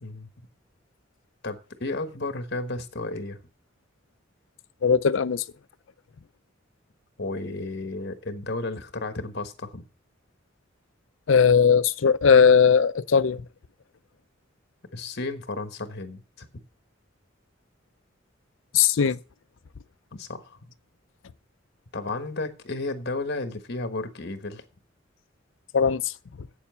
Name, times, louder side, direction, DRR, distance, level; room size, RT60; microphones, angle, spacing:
voice 1, 1.4-3.4 7.2-9.9 14.9-16.5 20.1-20.7 21.9-24.6, left 2 dB, 60° left, 1.3 m, -33 dB
voice 2, 4.8-5.4 11.3-13.5 18.7-19.2 25.7-26.1 26.4-26.5, left 6 dB, 80° left, 0.5 m, -19 dB
8.4 x 7.2 x 6.8 m
head